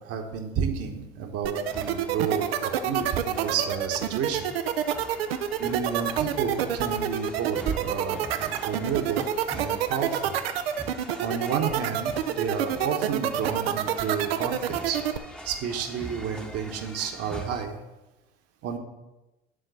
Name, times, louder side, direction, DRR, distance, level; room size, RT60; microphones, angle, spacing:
voice 1, 0.0-4.5 5.6-10.3 11.2-15.0 15.4-17.8 18.6-18.8, right 7 dB, 55° right, 3 dB, 1.2 m, -31 dB
sound 1, 1.4-15.2, right 11 dB, 85° right, 0.5 m, -27 dB
sound 2, 1.6-17.7, equal, 5° left, 0.9 m, -44 dB
8.9 x 3.8 x 6.8 m, 1.0 s
hypercardioid pair, 65°, 29 cm